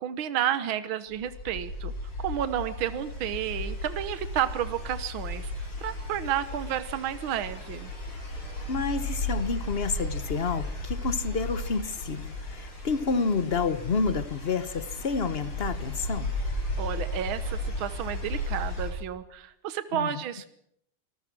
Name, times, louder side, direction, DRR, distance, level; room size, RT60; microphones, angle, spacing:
voice 1, 0.0-1.9 2.2-5.5 5.8-7.9 16.8-20.5, right 10 dB, 75° right, 12 dB, 1.9 m, -31 dB
sound 1, 1.1-18.9, left 1 dB, 85° left, 8.8 m, -35 dB
voice 2, 8.7-16.3 19.9-20.1, left 4 dB, 40° left, 13 dB, 0.9 m, -29 dB
26.5 x 20.0 x 6.1 m, 0.72 s
omnidirectional pair, 2.3 m